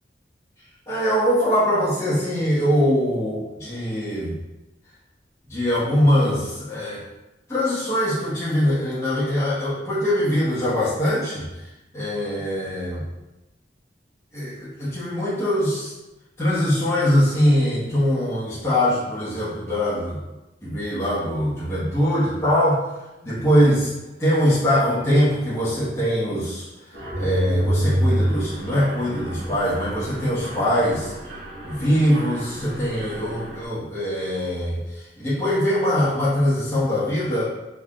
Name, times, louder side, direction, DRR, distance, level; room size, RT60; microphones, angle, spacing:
voice 1, 0.9-4.4 5.5-7.0 7.5-13.0 14.3-15.9 16.4-20.2 20.6-22.8 23.2-23.9 24.2-26.7 27.2-31.1 31.6-37.4, equal, 15° left, -11 dB, 1.2 m, -22 dB
Mechanisms, 26.9-33.7, equal, 85° right, 1.2 m, -28 dB
3.7 x 3.5 x 2.4 m, 1.0 s
head